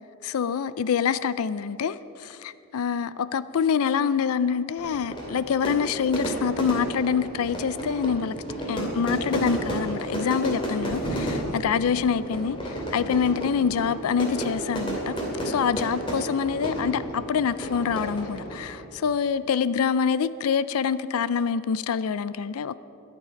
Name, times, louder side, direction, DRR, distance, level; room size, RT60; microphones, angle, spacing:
voice 1, 0.2-8.3 8.7-15.2 15.4-22.8, left 6 dB, 75° left, 0.4 m, -26 dB
Fire / Fireworks, 4.8-18.8, right 1 dB, 25° left, 2.4 m, -32 dB
21.5 x 7.5 x 5.2 m
head